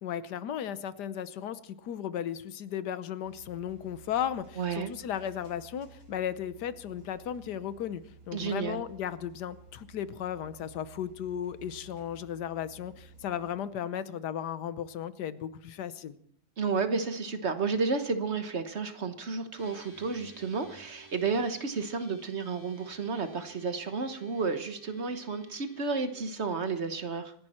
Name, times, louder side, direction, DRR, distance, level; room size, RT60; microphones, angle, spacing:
voice 1, 0.0-16.1, left 9 dB, 85° left, 14 dB, 1.4 m, -35 dB
Thai National Railway Train Second Class Sleeper, 3.2-13.6, right 4 dB, 75° right, 3.9 m, -55 dB
voice 2, 4.6-4.9 8.3-8.8 16.6-27.3, right 4 dB, 45° right, 9 dB, 1.3 m, -32 dB
sound 1, 19.6-26.1, right 3 dB, 10° left, 2.4 m, -54 dB
26.0 x 11.0 x 4.3 m, 0.65 s
omnidirectional pair, 1.7 m